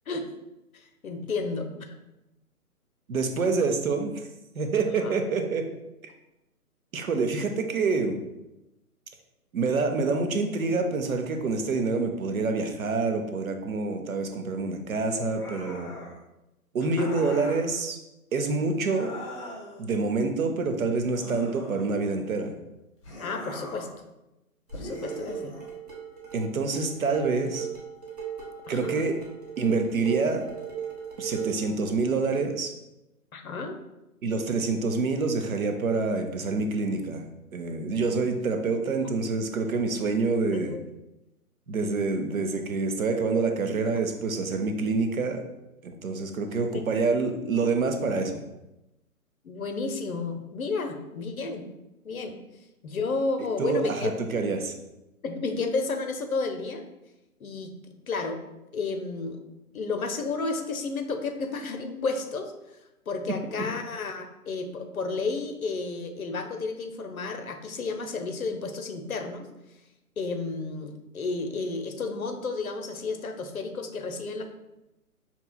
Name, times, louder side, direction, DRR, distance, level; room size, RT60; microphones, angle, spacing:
voice 1, 0.7-1.7 5.0-5.1 17.0-17.3 23.2-23.9 24.7-25.5 28.7-29.1 33.3-33.8 40.7-40.8 49.4-51.6 52.0-52.3 52.8-54.1 55.2-56.8 57.4-57.7 58.1-58.4 58.7-59.4 59.7-62.5 63.1-69.5 70.2-74.4, left 3 dB, 70° left, 6 dB, 0.6 m, -32 dB
voice 2, 3.1-4.2 4.6-5.6 6.9-8.2 9.5-15.9 16.7-18.0 18.3-19.1 19.8-22.5 26.3-27.7 28.7-29.2 29.6-30.4 31.2-32.7 34.2-37.2 37.5-40.8 41.7-45.4 45.8-48.4 53.6-54.7 63.6-63.7, right 4 dB, 65° right, 6 dB, 0.7 m, -27 dB
sound 1, 15.2-16.2 16.9-17.7 18.8-19.9 21.1-22.3 23.0-24.0 24.7-25.7, left 1 dB, 20° left, 0.6 m, -41 dB
sound 2, 24.7-31.7, right 8 dB, 25° right, 0.7 m, -37 dB
5.3 x 2.9 x 2.2 m, 0.94 s
figure-of-eight pair, 135°, 45 cm